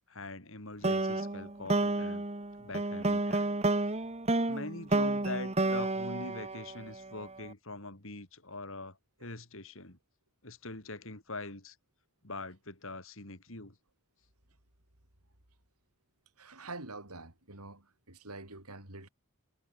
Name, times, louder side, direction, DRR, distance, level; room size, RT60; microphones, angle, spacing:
voice 1, 0.0-2.3 2.6-3.6 4.5-10.0 10.4-11.8 12.2-13.8, left 2 dB, 60° left, 4.0 m, -43 dB
sound 1, 0.8-7.3, right 2 dB, 30° right, 1.5 m, -30 dB
voice 2, 16.4-19.1, right 2 dB, 90° right, 6.9 m, -46 dB
head